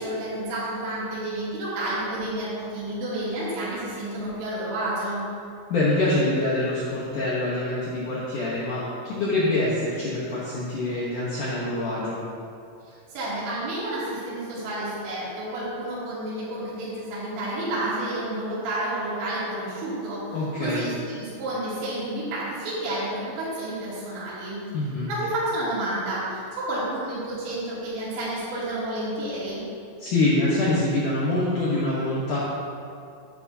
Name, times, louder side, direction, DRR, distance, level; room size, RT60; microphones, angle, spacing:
voice 1, 0.0-5.2 12.9-24.6 25.1-29.6, right 1 dB, 70° right, -9 dB, 4.8 m, -30 dB
voice 2, 5.7-12.2 20.3-20.8 24.7-25.1 30.0-32.4, left 2 dB, 75° left, -7 dB, 1.9 m, -25 dB
10.5 x 10.5 x 2.8 m, 2.4 s
omnidirectional pair, 5.4 m